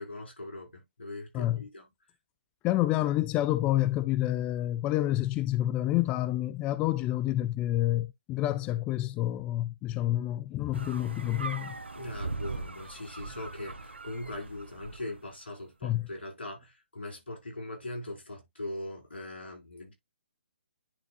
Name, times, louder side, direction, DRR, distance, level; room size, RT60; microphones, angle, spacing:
voice 1, 0.0-1.9 11.9-19.9, left 1 dB, 75° left, 5.0 m, -41 dB
voice 2, 2.6-11.7 15.8-16.1, left 14 dB, 20° left, 0.4 m, -28 dB
sound 1, 10.7-15.3, right 3 dB, 85° right, 1.3 m, -40 dB
10.5 x 5.1 x 2.3 m
figure-of-eight pair, 140°, 6 cm